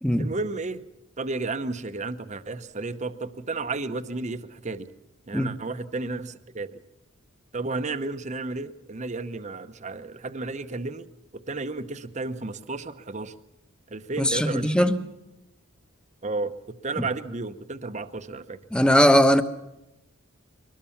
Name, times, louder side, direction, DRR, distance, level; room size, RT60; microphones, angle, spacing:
voice 1, 0.2-0.8 1.2-4.9 5.3-6.8 7.5-11.1 11.3-13.3 13.9-14.9 16.2-18.6, right 3 dB, 35° right, 11 dB, 0.8 m, -32 dB
voice 2, 14.2-15.1 17.0-17.1 18.7-19.4, equal, 5° left, 10 dB, 1.0 m, -20 dB
23.0 x 19.5 x 7.2 m, 0.92 s
head